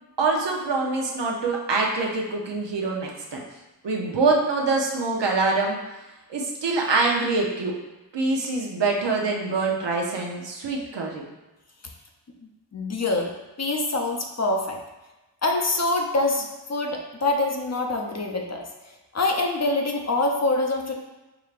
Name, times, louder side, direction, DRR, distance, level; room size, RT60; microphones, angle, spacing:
voice 1, 0.2-3.4 3.8-5.8 6.3-7.8 8.1-11.2, right 3 dB, 85° right, -1 dB, 0.8 m, -24 dB
voice 2, 12.7-13.3 13.6-14.8 15.4-20.9, left 2 dB, 40° left, 2 dB, 0.6 m, -25 dB
4.9 x 3.3 x 2.5 m, 1.1 s
wide cardioid pair, 65°, 41 cm